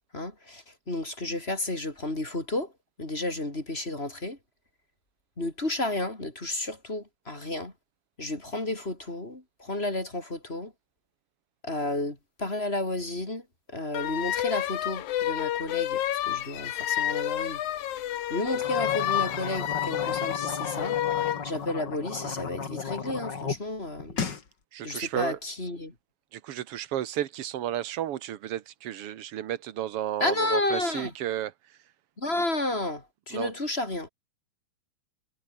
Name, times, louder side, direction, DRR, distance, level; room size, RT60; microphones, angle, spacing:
voice 1, 0.1-2.7 3.0-4.4 5.4-7.7 8.2-10.7 11.6-17.6 18.3-21.0 21.4-24.2 24.8-25.9 30.2-31.1 32.2-34.1, left 2 dB, 20° left, 4.0 m, -32 dB
sound 1, 13.9-21.5, left 12 dB, 80° left, 2.7 m, -29 dB
sound 2, 18.5-23.6 23.9-24.4, left 5 dB, 40° left, 2.7 m, -35 dB
voice 2, 24.7-25.4 26.3-31.8 33.3-33.5, right 11 dB, 60° right, 2.0 m, -33 dB
omnidirectional pair, 3.3 m